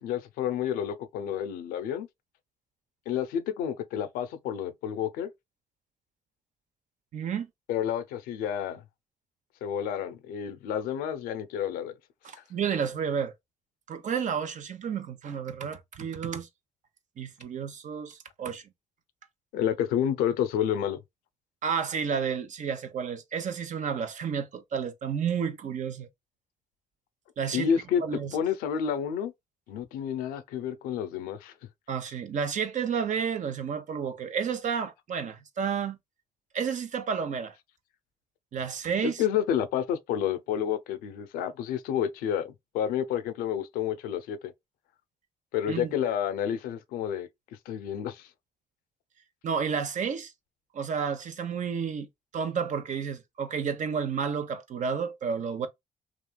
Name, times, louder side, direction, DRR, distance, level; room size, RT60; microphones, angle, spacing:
voice 1, 0.0-2.1 3.1-5.3 7.7-8.8 9.6-11.9 19.5-21.0 27.5-29.3 29.7-31.5 39.0-44.5 45.5-47.3 47.7-48.3, left 9 dB, 90° left, 0.4 m, -30 dB
voice 2, 7.1-7.5 12.2-13.3 13.9-16.5 17.2-18.6 21.6-26.1 27.4-27.7 28.0-28.3 31.9-36.0 36.5-37.5 38.5-39.2 45.7-45.9 49.4-50.3 50.7-52.1 52.3-55.7, right 6 dB, 60° right, 0.6 m, -31 dB
2.9 x 2.4 x 2.2 m
supercardioid pair, 50°, 14 cm